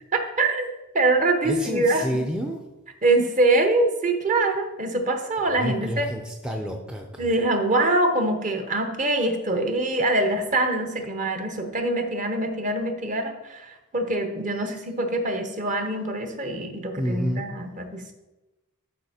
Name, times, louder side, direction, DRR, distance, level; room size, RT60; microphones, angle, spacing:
voice 1, 0.1-2.0 3.0-6.1 7.2-18.1, right 2 dB, 35° right, 5 dB, 0.9 m, -24 dB
voice 2, 1.4-2.6 5.5-7.3 14.5-14.7 16.9-17.5, equal, 5° right, 2 dB, 0.6 m, -29 dB
11.5 x 4.2 x 4.3 m, 1.0 s
head